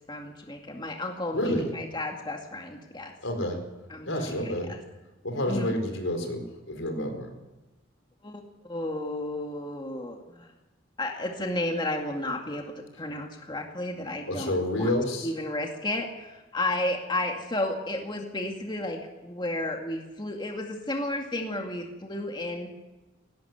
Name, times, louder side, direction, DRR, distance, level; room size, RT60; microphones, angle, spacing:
voice 1, 0.1-3.1 3.9-4.8 5.5-5.7 8.2-10.5 11.0-14.9 15.2-22.7, left 1 dB, 25° left, 2 dB, 2.2 m, -33 dB
voice 2, 1.3-1.7 3.2-3.6 4.1-4.7 5.2-7.3 14.3-15.3, left 1 dB, 80° left, 5 dB, 4.7 m, -29 dB
19.0 x 17.0 x 9.4 m, 1.1 s
head